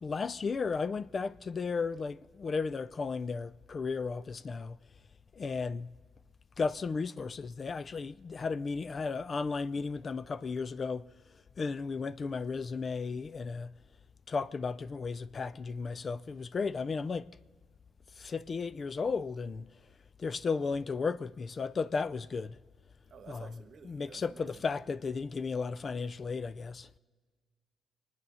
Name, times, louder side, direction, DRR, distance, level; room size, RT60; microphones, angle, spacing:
voice 1, 0.0-4.8 5.4-5.9 6.6-11.1 11.6-13.7 14.3-17.3 18.2-19.7 20.2-22.6 23.3-23.5 23.8-26.9, left 4 dB, 40° left, 0.4 m, -34 dB
voice 2, 23.1-24.6, right 6 dB, 55° right, 1.2 m, -52 dB
24.0 x 9.5 x 5.6 m
cardioid pair, 90°, 0 cm